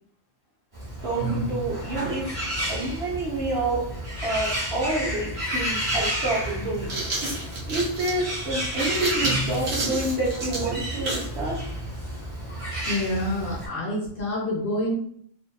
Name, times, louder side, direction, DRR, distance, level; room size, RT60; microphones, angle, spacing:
Bird, 0.7-13.7, right 1 dB, 30° right, 0.8 m, -31 dB
voice 1, 1.0-2.4 2.7-3.8 4.2-6.9 7.7-11.6, right 2 dB, 60° right, -5 dB, 0.9 m, -28 dB
sound 1, 6.6-11.4, right 2 dB, 75° right, 1.2 m, -31 dB
voice 2, 12.8-14.9, left 1 dB, 50° left, -6 dB, 0.9 m, -27 dB
2.6 x 2.3 x 2.2 m, 0.63 s
omnidirectional pair, 1.4 m